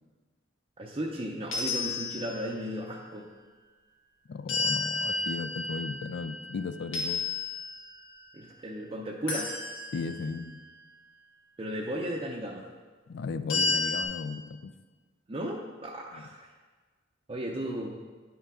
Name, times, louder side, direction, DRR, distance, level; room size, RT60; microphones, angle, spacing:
voice 1, 0.8-3.3 8.3-9.5 11.6-12.7 15.3-16.5 17.3-18.0, equal, 25° right, -2 dB, 0.5 m, -35 dB
sound 1, 1.5-2.7 4.5-6.5 6.9-8.2 9.3-10.3 13.5-14.0, left 3 dB, 85° left, 1.5 m, -31 dB
voice 2, 4.3-7.3 9.9-10.6 13.1-14.7 16.1-16.3, left 4 dB, 55° left, 11 dB, 0.3 m, -36 dB
9.7 x 5.7 x 3.6 m, 1.4 s
head